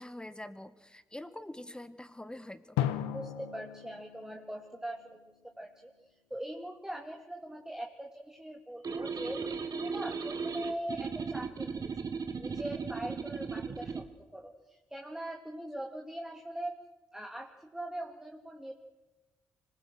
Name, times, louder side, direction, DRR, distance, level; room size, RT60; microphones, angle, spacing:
voice 1, 0.0-2.8, left 1 dB, 10° left, 11 dB, 1.9 m, -45 dB
Drum, 2.8-5.5, left 11 dB, 85° left, 1.0 m, -36 dB
voice 2, 3.1-5.2 5.6-5.9 6.3-9.4 9.7-11.9 12.4-14.0 14.3-16.8 17.1-18.7, right 1 dB, 5° right, 2 dB, 2.4 m, -41 dB
sound 1, 8.8-14.1, right 5 dB, 45° right, 1.8 m, -36 dB
25.5 x 21.5 x 6.3 m, 1.1 s
hypercardioid pair, 45°, 9 cm